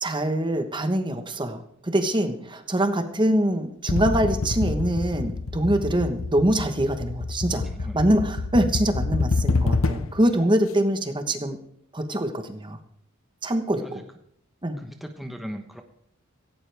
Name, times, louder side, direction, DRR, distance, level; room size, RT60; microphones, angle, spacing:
voice 1, 0.0-11.6 11.9-12.8 13.4-14.0 14.6-14.8, right 1 dB, 25° right, 7 dB, 1.2 m, -24 dB
sound 1, 3.9-10.3, left 3 dB, 80° left, 0.8 m, -27 dB
voice 2, 14.8-15.8, equal, ahead, 4 dB, 1.1 m, -38 dB
17.0 x 16.5 x 3.5 m, 0.69 s
head